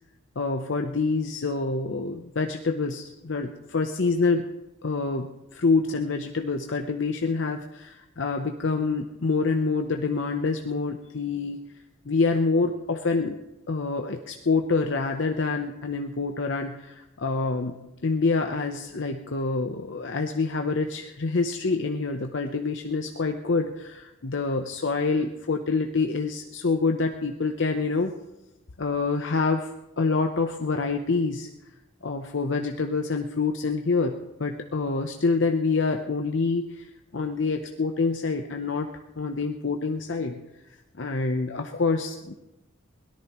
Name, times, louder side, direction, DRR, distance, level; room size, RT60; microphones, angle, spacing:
voice 1, 0.4-4.5 4.8-11.6 12.1-13.4 13.7-17.8 18.0-28.1 28.8-31.5 32.0-36.9 37.1-38.9 39.2-40.4 41.0-42.3, left 4 dB, 65° left, 4 dB, 0.8 m, -26 dB
23.0 x 18.0 x 3.1 m, 0.93 s
head